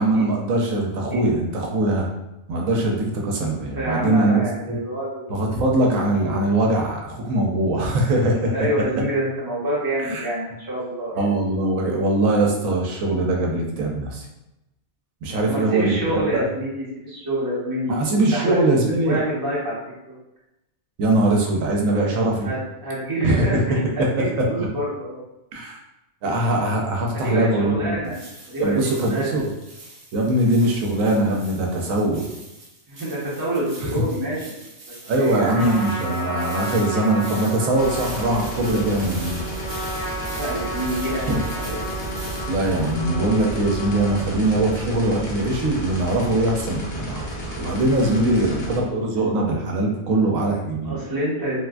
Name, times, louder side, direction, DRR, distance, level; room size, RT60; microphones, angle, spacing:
voice 1, 0.0-2.1 2.5-4.8 5.3-8.5 10.0-10.3 11.2-14.2 15.2-16.4 17.9-19.2 21.0-22.5 23.2-23.4 24.0-24.1 24.6-24.7 25.5-25.8 26.2-28.0 28.6-29.5 30.1-32.2 33.8-33.9 35.1-39.4 41.3-41.4 42.5-51.0, right 2 dB, 80° right, 0 dB, 1.0 m, -21 dB
voice 2, 3.5-5.3 8.4-11.3 15.5-18.6 19.0-19.8 22.4-25.2 27.1-28.2 28.5-29.4 32.9-34.5 35.1-35.7 40.3-41.3 41.5-41.8 48.0-48.5 50.8-51.6, right 1 dB, 20° right, -7 dB, 0.8 m, -27 dB
sound 1, 28.0-42.9, right 2 dB, 50° right, 0.4 m, -42 dB
Trumpet, 35.4-44.2, equal, 60° left, 0.9 m, -33 dB
sound 2, 37.7-48.8, right 1 dB, 80° left, 1.2 m, -32 dB
3.3 x 2.4 x 2.3 m, 0.93 s
omnidirectional pair, 1.4 m